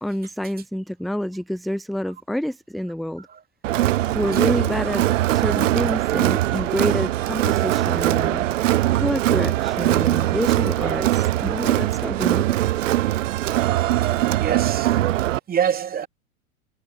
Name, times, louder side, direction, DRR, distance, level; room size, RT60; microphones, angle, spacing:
voice 1, 0.0-3.3 4.1-5.1 5.3-8.5 8.9-12.4, equal, ahead, 0.4 m, -28 dB
Crowd, 3.6-15.4, right 14 dB, 65° right, 0.8 m, -21 dB
voice 2, 14.4-15.1 15.5-16.1, right 8 dB, 20° right, 2.9 m, -26 dB
figure-of-eight pair, 100°, 42 cm